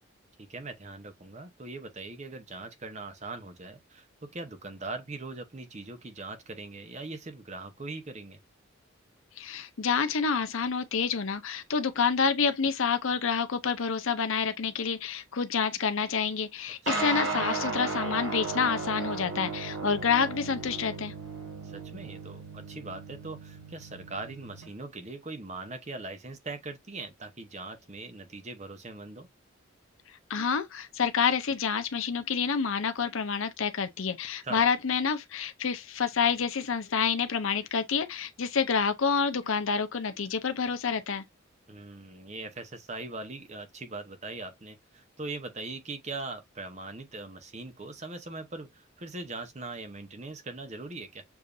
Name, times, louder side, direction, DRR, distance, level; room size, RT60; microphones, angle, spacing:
voice 1, 0.4-8.4 16.9-17.1 21.6-29.3 34.4-34.6 41.7-51.2, right 3 dB, 35° right, 0.8 m, -41 dB
voice 2, 9.4-21.1 30.3-41.2, left 6 dB, 70° left, 0.6 m, -28 dB
sound 1, 16.9-24.7, right 3 dB, 55° right, 1.5 m, -35 dB
6.9 x 2.7 x 2.4 m
head